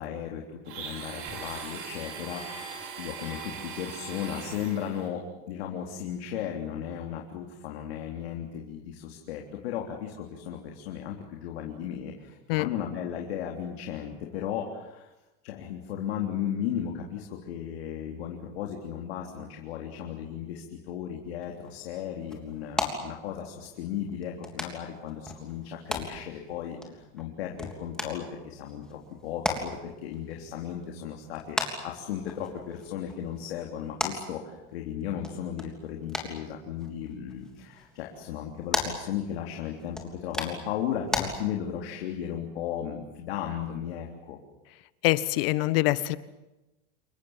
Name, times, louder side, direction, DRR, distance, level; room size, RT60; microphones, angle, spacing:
voice 1, 0.0-15.1 15.4-44.4, left 9 dB, 90° left, 1 dB, 3.7 m, -35 dB
Domestic sounds home sounds, 0.6-5.1, right 5 dB, 45° right, 5.6 m, -40 dB
sound 1, 21.4-41.2, left 2 dB, ahead, 3.3 m, -38 dB
voice 2, 45.0-46.2, left 18 dB, 70° left, 15 dB, 1.4 m, -24 dB
29.0 x 23.0 x 7.5 m, 1.0 s
supercardioid pair, 160°, 30 cm